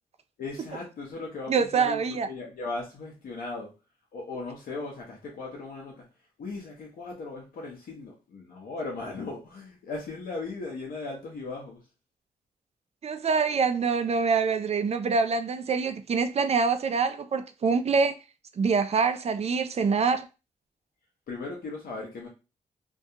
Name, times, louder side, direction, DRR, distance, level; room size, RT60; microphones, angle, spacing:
voice 1, 0.4-3.7 4.1-6.1 6.4-11.8 21.3-22.3, left 3 dB, 75° left, 0.8 m, -37 dB
voice 2, 1.5-2.3 13.0-18.1 18.6-20.3, right 5 dB, 45° right, 0.4 m, -25 dB
2.2 x 2.2 x 2.7 m
supercardioid pair, 50°, 15 cm